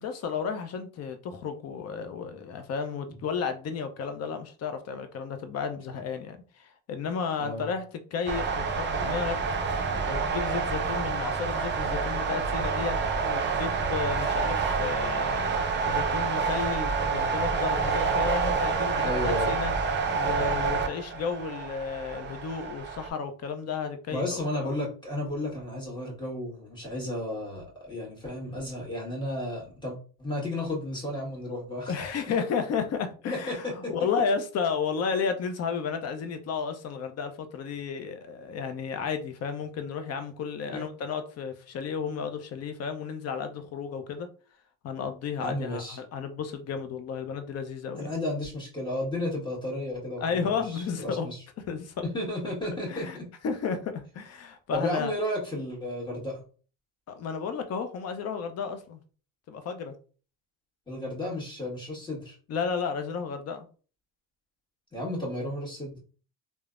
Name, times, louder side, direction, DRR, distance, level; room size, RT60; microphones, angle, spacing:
voice 1, 0.0-7.8 8.1-9.4 10.1-13.0 13.2-15.5 15.9-19.7 20.1-24.5 31.9-44.3 44.8-48.1 50.2-51.3 51.7-51.9 52.9-53.2 53.4-55.1 57.1-59.0 59.5-59.9 62.5-63.7, left 6 dB, 40° left, 0.6 m, -32 dB
sound 1, 8.3-23.1, right 5 dB, 30° right, 0.5 m, -28 dB
voice 2, 19.0-19.5 24.1-31.9 33.3-33.9 40.7-40.9 45.4-46.0 48.0-51.4 52.0-53.3 54.7-56.4 60.9-62.4 64.9-66.0, left 1 dB, 10° left, 1.4 m, -33 dB
3.1 x 2.1 x 2.4 m
supercardioid pair, 100°, 41 cm